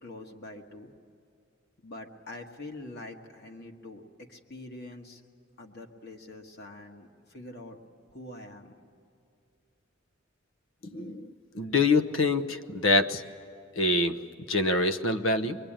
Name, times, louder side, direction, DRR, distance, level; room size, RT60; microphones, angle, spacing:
voice 1, 0.0-0.9 1.8-5.2 5.6-7.8 8.1-8.8, left 2 dB, 55° left, 2 dB, 1.7 m, -45 dB
voice 2, 10.9-13.2 13.8-14.2 14.5-15.6, left 3 dB, 70° left, 10 dB, 1.0 m, -25 dB
24.0 x 23.0 x 8.9 m, 2.4 s
head